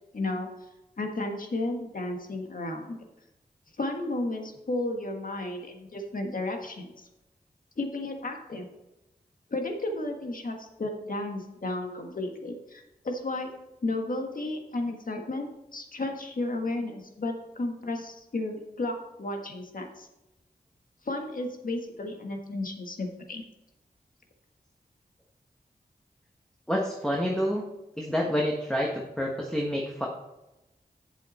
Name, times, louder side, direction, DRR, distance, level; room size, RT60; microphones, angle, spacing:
voice 1, 0.1-0.5 1.0-3.0 3.8-7.1 7.8-8.7 9.5-13.5 13.8-20.1 21.0-23.4, left 2 dB, 60° left, 3 dB, 1.6 m, -33 dB
voice 2, 26.7-27.6 28.0-30.1, equal, 5° left, -2 dB, 1.4 m, -28 dB
8.5 x 7.3 x 4.3 m, 0.96 s
cardioid pair, 60°, 16 cm